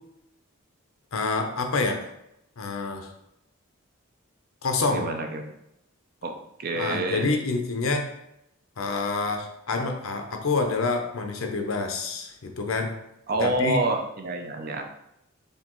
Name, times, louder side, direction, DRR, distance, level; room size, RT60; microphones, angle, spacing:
voice 1, 1.1-2.1 2.6-3.1 4.6-5.1 6.7-8.1 8.8-12.9 13.3-13.8, left 3 dB, 70° left, 4 dB, 0.6 m, -27 dB
voice 2, 4.9-5.4 6.2-7.3 13.3-14.8, right 2 dB, 40° right, 5 dB, 0.5 m, -28 dB
4.3 x 3.3 x 3.0 m, 0.83 s
head